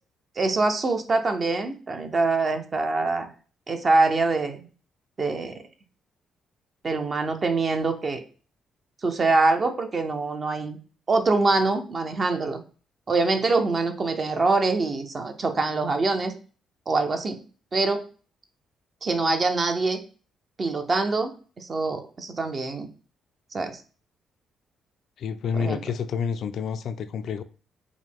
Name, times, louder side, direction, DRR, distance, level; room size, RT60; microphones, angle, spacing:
voice 1, 0.4-3.3 3.7-4.7 5.2-5.6 6.8-8.2 9.0-10.8 11.1-12.6 13.1-16.3 16.9-17.4 17.7-18.0 19.0-20.0 20.6-21.3 21.6-22.9 23.5-23.8 25.5-25.8, right 3 dB, 40° right, 0.7 m, -24 dB
voice 2, 25.2-27.4, left 6 dB, 65° left, 0.4 m, -29 dB
4.8 x 2.2 x 3.6 m
cardioid pair, 90°, 0 cm